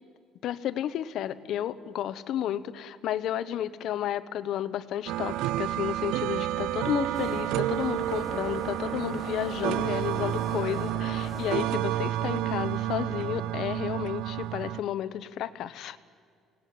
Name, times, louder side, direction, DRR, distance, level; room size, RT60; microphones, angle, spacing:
voice 1, 0.4-16.0, left 11 dB, 60° left, 14 dB, 0.9 m, -32 dB
sound 1, 5.1-14.8, right 14 dB, 85° right, 0.5 m, -30 dB
sound 2, 7.1-11.9, left 5 dB, 25° left, 0.7 m, -42 dB
23.0 x 18.5 x 9.5 m, 2.2 s
cardioid pair, 160°, 0 cm